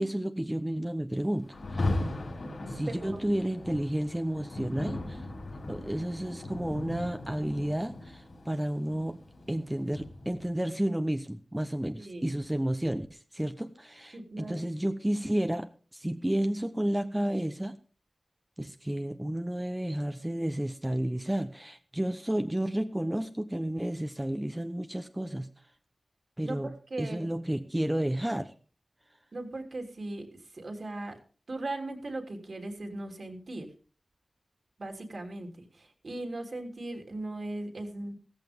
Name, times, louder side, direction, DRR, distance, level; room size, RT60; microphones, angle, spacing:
voice 1, 0.0-1.8 2.7-5.3 5.7-17.8 18.6-25.7 26.4-28.5, right 1 dB, 10° right, 7 dB, 0.8 m, -31 dB
Rain, 1.5-10.6, left 2 dB, 65° left, 5.3 m, -37 dB
voice 2, 2.9-3.2 12.0-12.3 14.1-14.7 26.4-27.3 29.3-31.2 31.5-33.7 34.8-38.2, right 2 dB, 55° right, 3 dB, 3.1 m, -38 dB
16.0 x 14.5 x 3.6 m, 0.39 s
wide cardioid pair, 100°, 0 cm